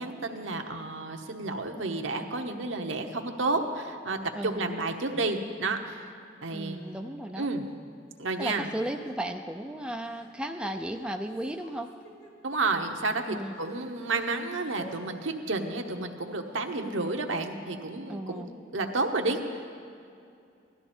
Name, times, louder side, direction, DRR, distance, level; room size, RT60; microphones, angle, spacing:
voice 1, 0.0-6.1 6.4-6.8 7.4-7.6 8.2-8.7 12.4-18.4 18.7-19.7, right 3 dB, 80° right, 4 dB, 1.0 m, -31 dB
voice 2, 4.3-4.8 6.5-7.5 8.4-11.9 13.3-13.6 18.1-18.5, right 1 dB, 5° right, 3 dB, 0.4 m, -35 dB
Crying sobbing, 6.9-7.0 7.5-7.7 8.7-9.3 10.0-10.3 10.6-12.3 12.9-13.0 13.3-14.3 14.8-15.0 16.3-16.9, equal, 45° left, 2.3 m, -52 dB
16.5 x 12.5 x 4.4 m, 2.5 s
head